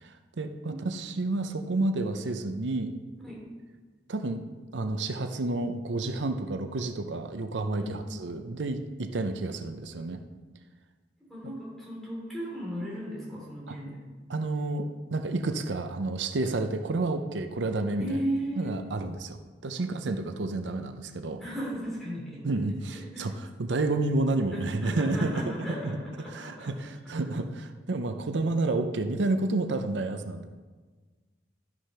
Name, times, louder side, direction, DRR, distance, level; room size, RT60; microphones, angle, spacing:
voice 1, 0.0-2.9 4.1-4.4 4.7-10.2 13.7-13.8 14.3-18.2 18.6-21.4 22.4-25.4 25.7-26.0 26.3-30.5, right 2 dB, 90° right, 8 dB, 0.7 m, -30 dB
voice 2, 11.2-14.0 18.0-18.7 19.8-19.9 21.4-22.5 22.9-23.3 24.5-26.7, equal, ahead, -5 dB, 3.5 m, -36 dB
11.5 x 6.2 x 5.6 m, 1.4 s
head